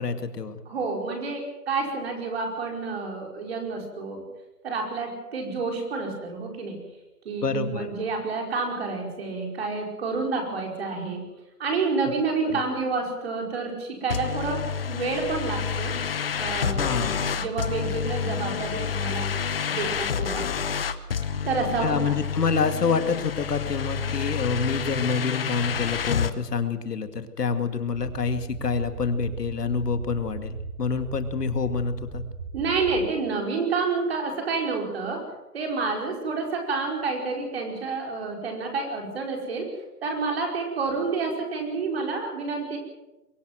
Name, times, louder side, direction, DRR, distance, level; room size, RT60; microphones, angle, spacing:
voice 1, 0.0-0.6 7.4-7.9 12.4-12.6 16.8-17.3 21.8-32.2, left 5 dB, 75° left, 8 dB, 2.3 m, -27 dB
voice 2, 0.6-4.2 4.6-6.8 7.2-11.2 11.6-16.0 16.4-16.9 17.2-19.3 19.7-20.5 21.4-22.1 32.5-39.7 40.0-42.8, right 4 dB, 40° right, 2 dB, 5.1 m, -29 dB
sound 1, 14.1-26.3, left 6 dB, 35° left, 1.0 m, -29 dB
sound 2, 27.9-33.1, right 4 dB, 55° right, 2.9 m, -38 dB
23.0 x 17.0 x 7.7 m, 1.0 s
hypercardioid pair, 165°, 47 cm